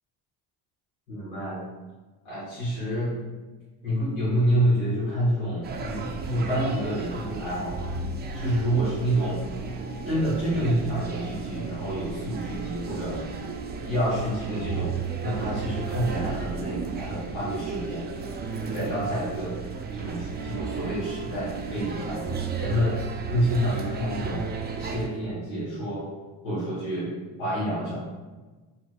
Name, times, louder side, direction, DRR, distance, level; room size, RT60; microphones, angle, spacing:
voice 1, 1.1-1.6 2.2-3.1 3.8-7.8 8.3-9.4 10.0-13.2 13.8-18.1 18.6-19.6 19.9-22.3 22.6-23.0 23.3-24.5 24.8-26.1 26.4-27.1 27.4-28.0, equal, 85° left, -10 dB, 1.5 m, -28 dB
sound 1, 5.6-25.1, right 5 dB, 25° right, 0.3 m, -34 dB
4.3 x 2.4 x 2.3 m, 1.3 s
supercardioid pair, 70°, 43 cm